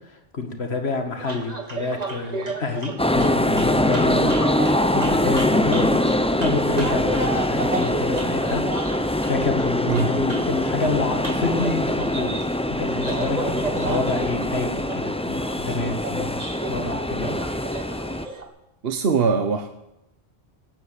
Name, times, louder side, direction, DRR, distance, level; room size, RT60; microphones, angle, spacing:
voice 1, 0.3-4.5 4.9-6.1 6.4-8.7 9.3-12.4 12.7-14.7 14.9-16.4 16.7-17.4, left 4 dB, 70° left, 5 dB, 2.1 m, -28 dB
sound 1, 1.2-18.4, right 2 dB, 35° right, 1.8 m, -33 dB
sound 2, 3.0-18.3, left 1 dB, 5° left, 0.6 m, -23 dB
voice 2, 18.8-19.7, right 5 dB, 65° right, 7 dB, 1.1 m, -21 dB
16.5 x 9.8 x 8.2 m, 0.89 s
omnidirectional pair, 1.1 m